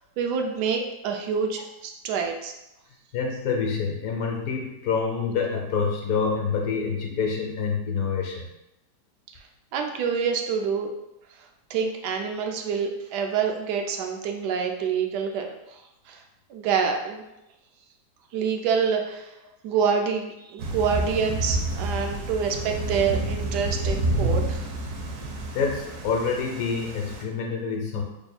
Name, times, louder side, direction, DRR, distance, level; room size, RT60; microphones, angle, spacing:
voice 1, 0.2-2.5 9.7-10.9 11.7-15.8 16.1-16.2 16.5-17.2 18.3-19.3 19.6-24.7, right 6 dB, 85° right, 3 dB, 1.2 m, -27 dB
voice 2, 3.1-8.5 25.5-28.0, left 5 dB, 65° left, 1 dB, 1.0 m, -27 dB
Thunder / Rain, 20.6-27.2, right 1 dB, 65° right, 0.9 m, -29 dB
3.4 x 2.3 x 4.1 m, 0.90 s
omnidirectional pair, 1.7 m